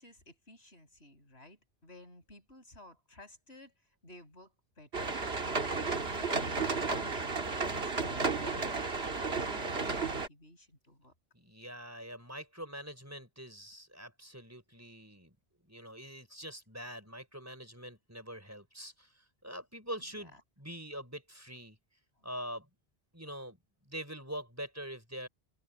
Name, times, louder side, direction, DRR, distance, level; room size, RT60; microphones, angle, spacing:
voice 1, 0.0-3.7 4.0-5.2 5.7-11.1 20.0-20.4 22.2-22.3 23.3-23.4, left 1 dB, 85° left, 7.3 m, -55 dB
sound 1, 4.9-10.3, right 4 dB, 75° right, 2.3 m, -33 dB
voice 2, 11.3-15.3 15.7-19.1 19.4-21.8 22.2-22.7 23.1-23.6 23.8-25.3, equal, 15° right, 4.9 m, -44 dB
open air
omnidirectional pair, 1.1 m